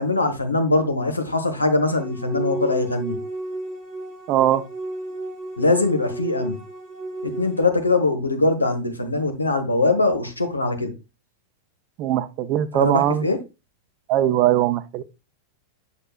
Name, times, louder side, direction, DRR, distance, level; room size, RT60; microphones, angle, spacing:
voice 1, 0.0-3.2 5.6-6.6 7.2-10.9 12.7-13.4, left 2 dB, 80° left, 1.1 m, -22 dB
sound 1, 1.9-7.6, right 1 dB, 45° left, 3.5 m, -32 dB
voice 2, 4.3-4.6 12.0-13.3 14.1-15.0, right 12 dB, 40° right, 0.6 m, -20 dB
7.2 x 6.6 x 2.3 m
figure-of-eight pair, 90°, 0 cm